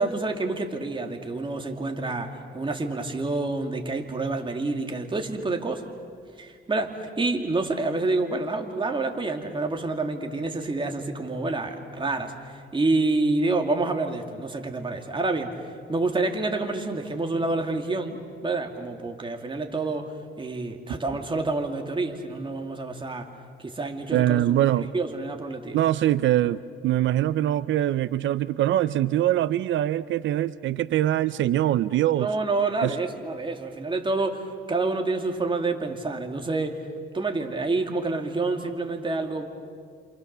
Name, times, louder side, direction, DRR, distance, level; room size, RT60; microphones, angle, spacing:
voice 1, 0.0-5.9 6.4-15.5 15.9-20.1 20.4-23.3 23.6-24.4 24.8-25.8 32.2-36.8 37.1-39.4, right 3 dB, 25° right, 4 dB, 2.6 m, -28 dB
voice 2, 24.1-24.9 25.7-32.3 32.8-33.0, right 13 dB, 75° right, 16 dB, 0.6 m, -23 dB
28.5 x 27.5 x 6.8 m, 2.2 s
cardioid pair, 90°, 20 cm